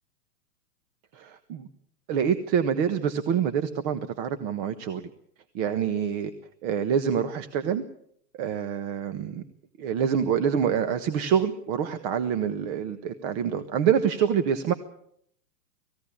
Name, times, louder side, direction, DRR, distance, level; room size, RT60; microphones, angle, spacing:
voice 1, 1.1-1.7 2.1-5.1 5.5-6.3 6.6-7.8 8.4-9.4 9.8-14.7, right 8 dB, 40° right, 9 dB, 1.4 m, -26 dB
20.0 x 16.5 x 8.8 m, 0.69 s
hypercardioid pair, 125°, 48 cm